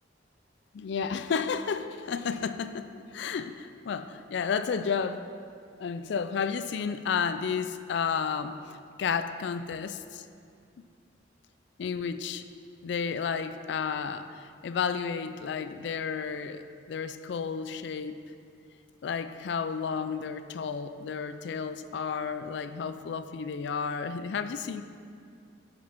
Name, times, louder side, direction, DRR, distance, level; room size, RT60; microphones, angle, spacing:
voice 1, 0.7-5.2 5.8-8.6 9.0-10.2 11.8-12.5 12.8-18.1 19.0-24.8, left 6 dB, 65° left, 10 dB, 0.3 m, -32 dB
7.7 x 6.1 x 5.3 m, 2.3 s
head